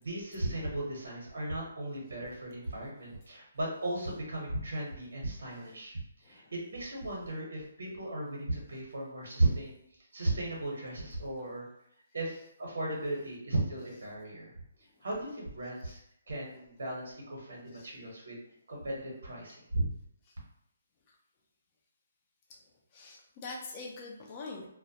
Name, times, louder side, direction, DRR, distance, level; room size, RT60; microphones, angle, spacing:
voice 1, 0.0-9.7 10.1-11.7 12.1-14.5 15.0-16.0 16.3-18.4 18.7-19.9, right 2 dB, 80° right, -2 dB, 0.9 m, -35 dB
voice 2, 6.2-6.6 9.2-9.6 11.4-11.5 12.2-12.4 12.9-13.3 13.8-14.0 14.9-15.1 15.8-16.0 16.3-16.6 17.7-17.9 20.2-20.3 22.5-22.6 22.9-24.7, left 3 dB, 30° left, -1 dB, 0.5 m, -47 dB
2.2 x 2.1 x 2.7 m, 0.73 s
hypercardioid pair, 155°, 0 cm